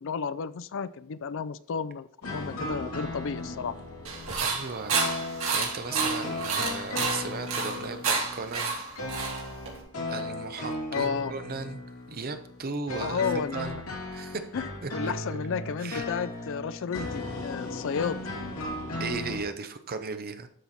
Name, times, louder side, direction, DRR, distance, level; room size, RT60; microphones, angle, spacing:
voice 1, 0.0-3.7 10.9-11.3 13.0-13.6 14.5-14.7 14.9-18.2, left 6 dB, 60° left, 15 dB, 0.4 m, -32 dB
sound 1, 2.2-19.4, left 2 dB, 80° left, 2.5 m, -36 dB
sound 2, 4.0-9.8, right 5 dB, 65° right, 3.0 m, -30 dB
voice 2, 4.4-8.8 10.1-11.8 12.1-13.2 13.5-13.8 14.1-14.4 14.8-15.1 15.8-16.2 19.0-20.5, right 4 dB, 45° right, 8 dB, 0.8 m, -36 dB
12.5 x 4.6 x 4.2 m, 0.63 s
head